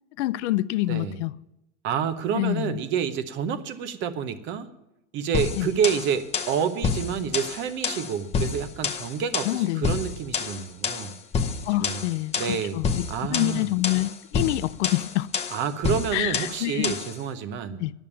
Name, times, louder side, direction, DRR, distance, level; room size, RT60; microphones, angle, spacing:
voice 1, 0.2-1.3 2.3-2.8 5.6-5.7 9.5-9.9 11.7-12.4 12.7-13.0 13.3-15.3 16.1-16.9 17.8-17.9, left 17 dB, 70° left, 0.5 m, -26 dB
voice 2, 0.9-1.2 1.8-4.7 5.1-11.1 11.8-12.0 12.4-12.8 13.1-13.7 15.5-17.8, right 7 dB, 30° right, 0.7 m, -28 dB
sound 1, 5.3-17.2, left 5 dB, 15° left, 0.7 m, -29 dB
10.5 x 7.1 x 8.5 m
supercardioid pair, 150°, 36 cm